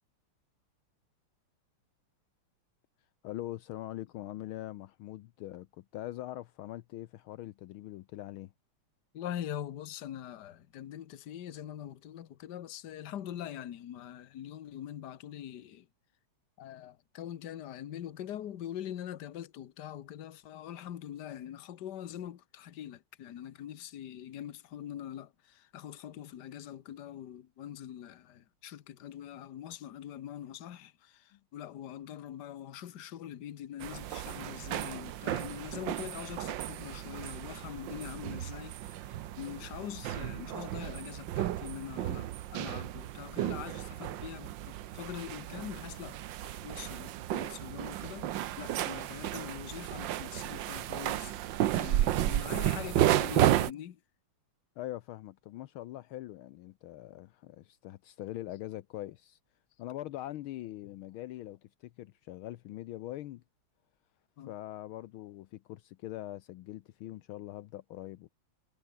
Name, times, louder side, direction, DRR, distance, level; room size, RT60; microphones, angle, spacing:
voice 1, 3.2-8.5 31.3-31.4 54.8-59.4 59.8-63.4 64.5-68.3, left 14 dB, 75° left, 1.5 m, -42 dB
voice 2, 9.1-15.8 16.6-39.1 39.4-46.2 46.4-54.0 64.4-64.6, left 11 dB, 55° left, 1.6 m, -43 dB
sound 1, 33.8-53.7, right 13 dB, 65° right, 1.4 m, -33 dB
omnidirectional pair, 2.4 m